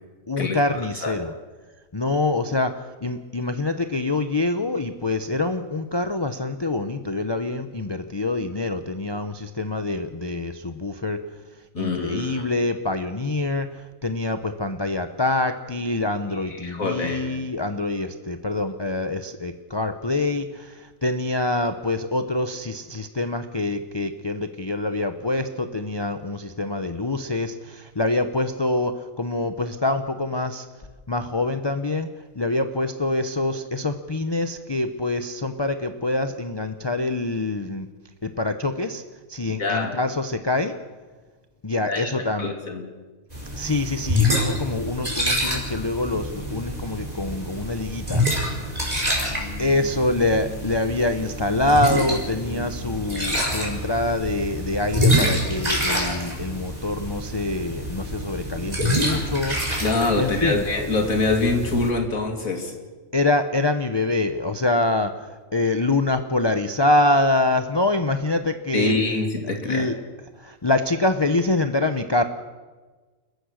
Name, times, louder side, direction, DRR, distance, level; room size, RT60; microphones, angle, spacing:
voice 1, 0.3-1.3 1.9-11.2 11.7-30.7 31.1-32.1 32.3-37.9 38.2-39.0 39.3-40.7 41.6-42.5 43.5-48.2 49.6-59.6 60.2-60.6 63.1-68.9 69.6-70.0 70.4-72.2, left 2 dB, 25° left, 8 dB, 0.7 m, -25 dB
voice 2, 11.7-12.4 16.5-17.4 39.6-39.9 41.9-42.1 42.4-42.8 59.8-62.7 68.7-69.9, left 3 dB, 90° left, 3 dB, 2.9 m, -24 dB
sound 1, 43.3-61.9, equal, 30° right, 5.0 m, -26 dB
29.5 x 14.5 x 6.4 m, 1.3 s
omnidirectional pair, 1.4 m